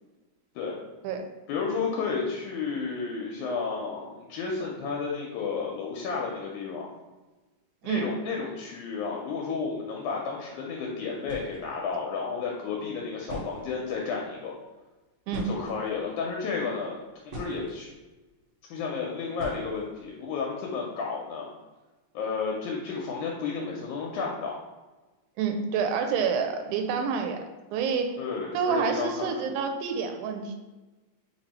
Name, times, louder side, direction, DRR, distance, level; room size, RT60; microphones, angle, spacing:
voice 1, 1.5-6.9 7.8-14.5 15.4-17.0 17.3-17.9 18.7-21.5 22.1-24.6 28.2-29.5, left 5 dB, 80° left, -1 dB, 2.0 m, -32 dB
sound 1, 11.2-11.6 12.8-12.9 13.2-14.0 15.3-16.1 16.8-17.8 19.4-20.0, equal, 55° right, 1.6 m, -40 dB
voice 2, 25.4-27.4 27.7-28.2 28.5-30.5, right 6 dB, 85° right, 5 dB, 2.0 m, -28 dB
4.6 x 2.6 x 4.2 m, 1.2 s
omnidirectional pair, 3.5 m